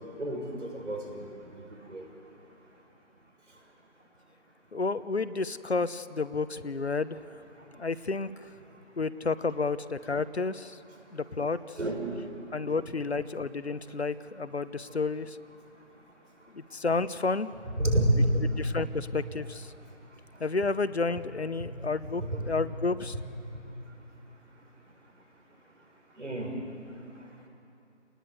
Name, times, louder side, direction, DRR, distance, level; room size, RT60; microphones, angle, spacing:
voice 1, 0.0-2.1 11.8-12.1 17.7-18.4 22.2-22.5 23.1-23.2 26.2-26.5, right 1 dB, 75° right, 2 dB, 7.0 m, -29 dB
voice 2, 4.7-7.2 7.8-8.3 9.0-10.8 11.1-11.6 12.5-15.4 16.5-17.5 18.6-19.7 20.4-23.1, left 4 dB, 60° left, 14 dB, 1.0 m, -31 dB
29.5 x 19.5 x 8.2 m, 2.8 s
figure-of-eight pair, 165°, 36 cm